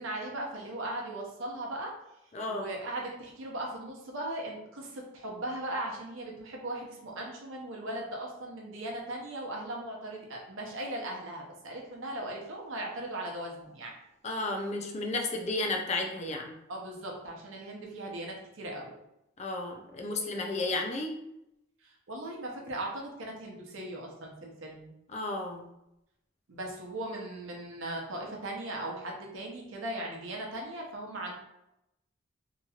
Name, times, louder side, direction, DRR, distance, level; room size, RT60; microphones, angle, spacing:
voice 1, 0.0-1.9 2.5-13.9 16.7-18.9 21.8-24.9 26.5-31.3, right 1 dB, 65° right, -1 dB, 0.7 m, -38 dB
voice 2, 2.3-2.7 14.2-16.6 19.4-21.2 25.1-25.7, left 2 dB, 30° left, 3 dB, 0.4 m, -33 dB
2.9 x 2.9 x 2.4 m, 0.85 s
head